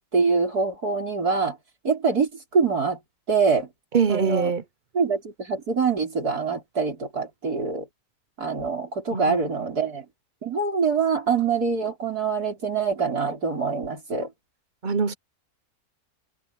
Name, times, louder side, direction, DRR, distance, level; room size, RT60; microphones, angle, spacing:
voice 1, 0.0-1.6 1.8-3.0 3.3-3.7 4.1-4.5 4.9-7.9 8.4-10.1 10.4-14.3, right 5 dB, 80° right, 5.5 m, -24 dB
voice 2, 3.9-4.6 9.1-9.4 14.8-15.1, right 5 dB, 40° right, 0.8 m, -23 dB
omnidirectional pair, 1.6 m